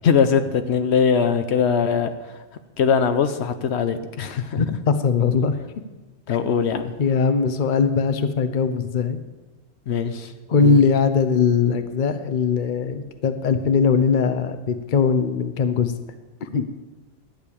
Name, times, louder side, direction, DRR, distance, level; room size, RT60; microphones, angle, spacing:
voice 1, 0.0-2.4 2.8-4.8 6.3-6.9 9.9-10.8, left 6 dB, 75° left, 9 dB, 1.0 m, -21 dB
voice 2, 4.6-5.6 7.0-9.2 10.5-15.9 16.4-16.7, left 5 dB, 50° left, 10 dB, 0.9 m, -20 dB
11.5 x 6.7 x 8.5 m, 1.2 s
omnidirectional pair, 1.2 m